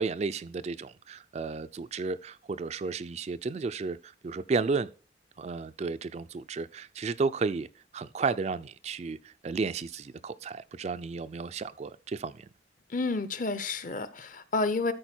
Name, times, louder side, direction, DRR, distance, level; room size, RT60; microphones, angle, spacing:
voice 1, 0.0-4.9 5.4-7.7 7.9-12.5, right 4 dB, 35° right, 0.3 m, -33 dB
voice 2, 12.9-14.9, left 3 dB, 40° left, 0.7 m, -30 dB
12.5 x 4.6 x 4.4 m
head